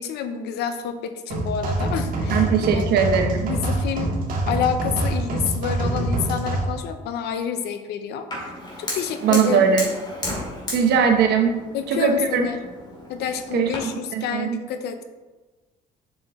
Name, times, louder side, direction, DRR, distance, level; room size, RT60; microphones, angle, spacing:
voice 1, 0.0-2.4 2.7-2.8 3.5-4.1 4.5-8.3 8.8-9.7 11.7-12.6 13.1-15.0, left 7 dB, 75° left, 9 dB, 0.7 m, -28 dB
sound 1, 1.3-6.6, right 2 dB, 55° right, 1.7 m, -25 dB
voice 2, 2.3-3.5 9.2-9.9 10.7-11.5 11.9-12.5 13.5-13.7 14.1-14.6, right 6 dB, 75° right, 5 dB, 1.0 m, -19 dB
Fire, 8.3-13.8, left 1 dB, 25° left, 2.4 m, -34 dB
7.4 x 6.4 x 3.1 m, 1.2 s
cardioid pair, 110°, 17 cm